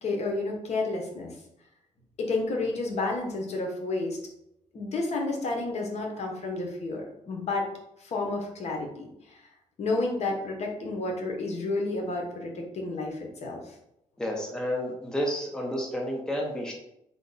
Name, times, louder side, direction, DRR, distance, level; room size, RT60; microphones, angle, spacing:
voice 1, 0.0-1.3 2.2-4.2 4.7-7.7 8.0-9.4 9.8-13.6, left 2 dB, 60° left, 1 dB, 0.9 m, -31 dB
voice 2, 14.2-16.7, equal, 5° left, 0 dB, 0.7 m, -30 dB
4.5 x 2.2 x 3.9 m, 0.81 s
cardioid pair, 130°, 13 cm